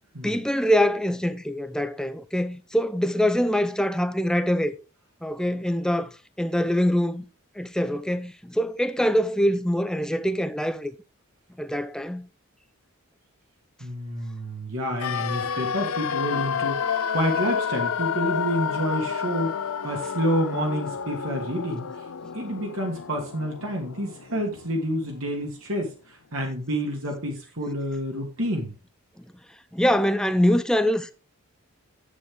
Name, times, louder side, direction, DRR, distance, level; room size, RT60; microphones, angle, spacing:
voice 1, 0.2-4.7 5.2-7.2 7.6-10.9 11.6-12.3 29.7-31.1, equal, 5° left, 0.5 m, -24 dB
voice 2, 13.8-21.9 22.3-28.7, equal, 70° right, 2.5 m, -29 dB
sound 1, 15.0-24.9 25.2-25.3, left 7 dB, 80° left, 0.6 m, -30 dB
11.0 x 8.0 x 3.7 m
head